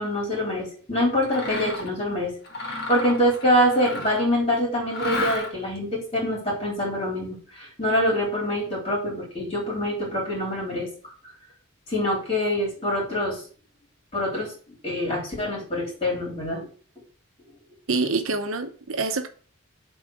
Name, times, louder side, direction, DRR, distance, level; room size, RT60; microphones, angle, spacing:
voice 1, 0.0-10.9 11.9-13.4 14.1-14.5 14.8-16.7, equal, 30° left, 3.7 m, -25 dB
Mechanisms, 1.2-1.9 2.4-4.4 4.9-5.8, left 2 dB, 50° left, 1.7 m, -32 dB
voice 2, 17.9-19.3, right 3 dB, 80° right, 0.9 m, -26 dB
7.3 x 4.1 x 4.8 m
head